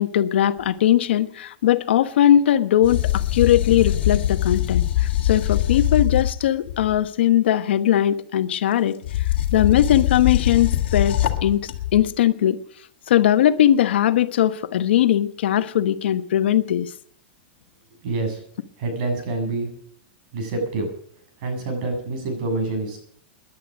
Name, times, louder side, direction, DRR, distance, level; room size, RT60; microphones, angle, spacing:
voice 1, 0.0-9.0 9.5-11.6 11.9-12.6 13.1-16.9, left 11 dB, 85° left, 11 dB, 1.1 m, -19 dB
sound 1, 2.8-7.0 9.0-12.1, left 12 dB, 70° left, 2.2 m, -23 dB
voice 2, 18.0-18.4 18.8-19.7 20.3-20.9 21.4-23.0, right 2 dB, 50° right, 4 dB, 7.4 m, -26 dB
18.5 x 11.0 x 6.2 m, 0.63 s
supercardioid pair, 160°, 6 cm